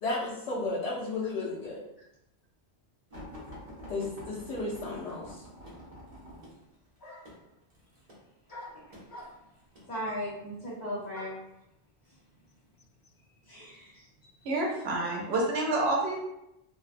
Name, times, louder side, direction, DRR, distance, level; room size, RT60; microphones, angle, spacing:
voice 1, 0.0-1.8 3.9-5.4, left 2 dB, 90° left, -8 dB, 1.0 m, -33 dB
sound 1, 3.1-9.9 10.7-11.1 12.0-12.7 13.4-13.6 14.0-14.1, equal, 40° right, 0.6 m, -48 dB
sound 2, 7.0-7.5 8.5-9.6 11.1-11.5 12.5-12.6 12.8-15.4, left 1 dB, 25° left, 0.6 m, -48 dB
voice 2, 9.9-11.3 13.4-14.0, equal, 40° left, -9 dB, 1.0 m, -37 dB
voice 3, 14.4-16.2, right 2 dB, 65° right, -1 dB, 0.9 m, -28 dB
2.7 x 2.1 x 2.4 m, 0.85 s
omnidirectional pair, 1.2 m